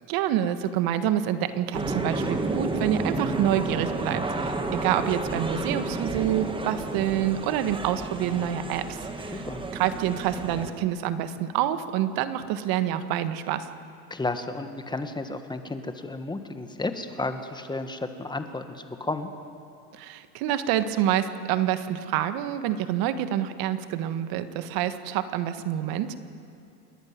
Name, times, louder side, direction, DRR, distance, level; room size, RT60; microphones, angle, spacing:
voice 1, 0.1-9.4 9.7-13.7 19.9-26.2, right 11 dB, 50° right, 11 dB, 1.6 m, -27 dB
sound 1, 1.7-10.7, right 2 dB, 10° right, 1.6 m, -31 dB
voice 2, 9.3-9.7 14.1-19.3, left 2 dB, 10° left, 8 dB, 1.5 m, -32 dB
28.5 x 11.5 x 9.6 m, 2.6 s
hypercardioid pair, 105°, 46 cm